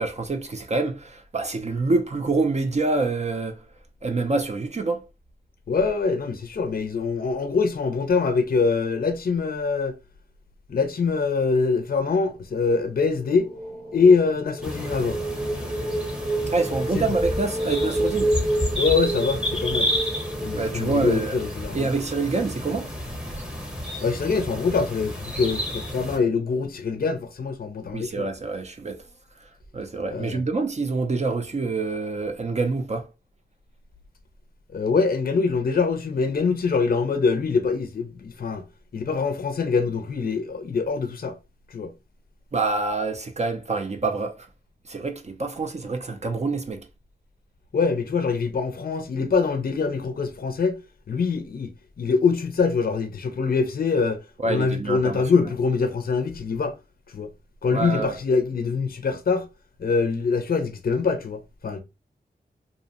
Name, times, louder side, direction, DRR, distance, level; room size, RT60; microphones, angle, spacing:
voice 1, 0.0-3.6 4.0-5.0 16.5-18.3 20.5-21.3 21.7-22.9 23.3-23.4 27.9-29.0 29.4-33.1 42.5-44.5 44.9-46.9 54.4-55.2 57.7-58.2, right 3 dB, 40° right, 0.4 m, -26 dB
voice 2, 5.7-10.0 10.7-13.5 13.9-15.2 16.9-17.0 18.8-19.9 20.4-21.9 24.0-28.2 30.1-30.4 34.7-38.6 38.9-41.3 41.7-41.9 47.7-50.8 51.1-56.7 57.1-57.3 57.6-59.5 59.8-61.8, left 4 dB, 60° left, 0.4 m, -24 dB
sound 1, 12.9-21.8, right 1 dB, 75° right, 1.1 m, -30 dB
sound 2, 14.6-26.2, equal, 5° right, 0.7 m, -31 dB
2.6 x 2.0 x 2.6 m
wide cardioid pair, 65°, 18 cm